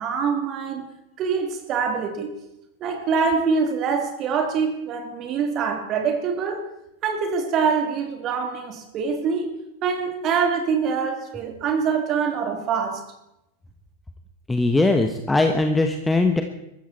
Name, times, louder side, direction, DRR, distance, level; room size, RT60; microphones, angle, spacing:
voice 1, 0.0-2.4 2.8-6.7 7.0-13.1, right 5 dB, 35° right, 3.0 m, -25 dB
voice 2, 14.5-16.4, left 2 dB, 10° left, 1.4 m, -20 dB
23.0 x 14.0 x 4.4 m
figure-of-eight pair, 90°, 0 cm